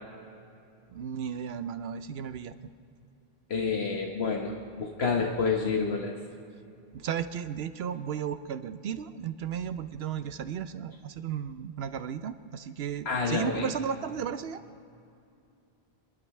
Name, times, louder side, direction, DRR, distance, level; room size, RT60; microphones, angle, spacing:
voice 1, 0.9-2.5 6.9-14.6, right 8 dB, 75° right, 11 dB, 0.8 m, -34 dB
voice 2, 3.5-6.2 13.0-13.7, left 5 dB, 75° left, 0 dB, 1.4 m, -29 dB
26.0 x 12.0 x 3.2 m, 2.6 s
omnidirectional pair, 1.1 m